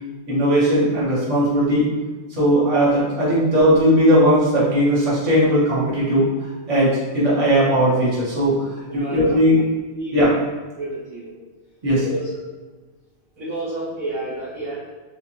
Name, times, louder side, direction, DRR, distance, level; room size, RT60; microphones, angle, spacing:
voice 1, 0.3-1.9 2.3-6.3 6.7-8.6 8.9-9.6 10.1-10.3 11.8-12.0, equal, 25° right, -8 dB, 0.7 m, -18 dB
voice 2, 8.9-9.4 9.9-10.1 10.8-11.3 12.0-12.3 13.4-14.8, right 2 dB, 70° right, -7 dB, 0.8 m, -30 dB
4.2 x 2.5 x 2.9 m, 1.3 s
omnidirectional pair, 2.4 m